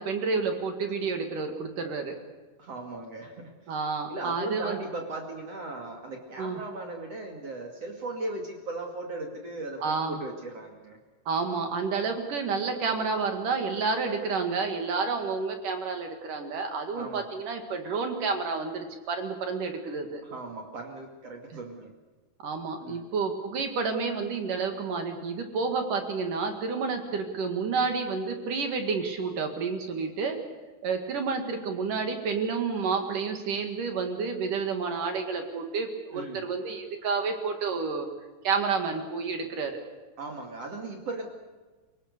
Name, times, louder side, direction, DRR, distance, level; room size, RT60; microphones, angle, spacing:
voice 1, 0.0-2.1 3.7-4.8 6.4-6.6 9.8-10.2 11.3-20.2 22.4-30.4 30.8-38.1 38.4-39.8, right 4 dB, 60° right, 5 dB, 3.4 m, -30 dB
voice 2, 2.6-3.5 4.1-11.0 16.9-17.3 20.2-21.9 22.8-23.0 36.1-36.5 40.2-41.3, right 2 dB, 45° right, 2 dB, 3.1 m, -37 dB
29.0 x 19.0 x 6.8 m, 1.3 s
omnidirectional pair, 4.5 m